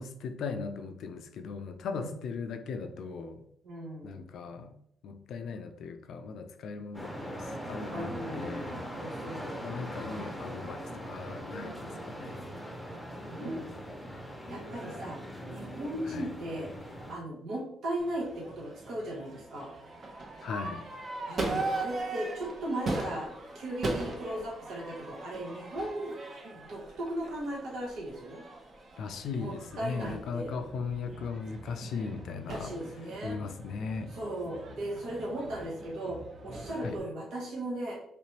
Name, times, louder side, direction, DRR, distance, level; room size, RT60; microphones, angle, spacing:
voice 1, 0.0-3.4 4.0-4.7 5.0-8.8 9.6-12.4 16.0-16.3 20.4-20.9 29.0-32.7 33.2-34.1 36.8-37.0, left 5 dB, 75° left, 8 dB, 0.4 m, -38 dB
voice 2, 3.6-4.2 7.9-8.7 9.0-9.6 13.3-13.7 14.5-15.2 15.5-19.7 21.3-23.3 23.5-26.1 26.4-28.4 29.4-30.5 32.5-33.4 34.1-37.9, right 1 dB, 75° right, -3 dB, 1.0 m, -37 dB
sound 1, 6.9-17.1, equal, 5° left, 0.7 m, -41 dB
Crowd / Fireworks, 18.0-37.0, right 2 dB, 45° right, 0.8 m, -40 dB
3.3 x 3.0 x 2.9 m, 0.72 s
cardioid pair, 90°, 0 cm